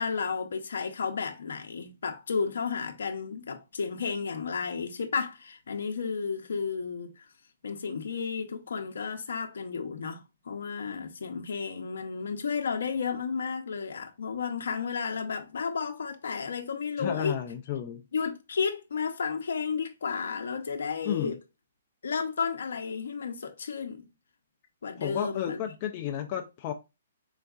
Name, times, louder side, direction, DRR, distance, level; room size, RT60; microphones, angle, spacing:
voice 1, 0.0-7.3 7.6-17.4 18.1-21.4 22.0-24.1 24.8-25.6, left 5 dB, 75° left, 0.6 m, -32 dB
voice 2, 17.0-18.0 21.0-21.3 25.0-26.7, left 10 dB, 25° left, 0.3 m, -32 dB
3.9 x 3.5 x 2.3 m
hypercardioid pair, 175°, 0 cm